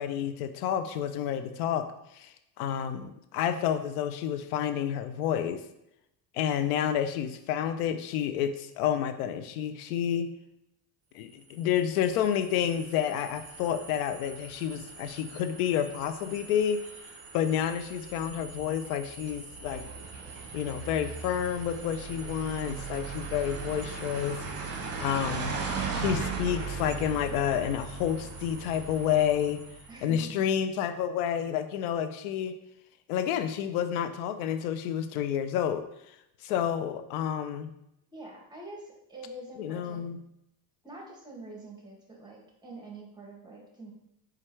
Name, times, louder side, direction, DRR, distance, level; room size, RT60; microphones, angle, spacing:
voice 1, 0.0-1.9 2.1-5.6 6.3-10.3 11.1-16.8 17.3-19.8 20.5-24.4 25.0-25.5 25.9-29.6 30.0-32.5 33.1-35.8 36.4-37.7 39.6-40.2, left 9 dB, 85° left, 9 dB, 0.6 m, -29 dB
sound 1, 11.6-30.1, right 4 dB, 35° right, 1.0 m, -39 dB
voice 2, 24.8-25.2 29.9-30.4 38.1-40.0 40.8-43.9, right 2 dB, 10° right, -1 dB, 1.5 m, -46 dB
4.4 x 2.5 x 4.5 m, 0.84 s
supercardioid pair, 80°, 43 cm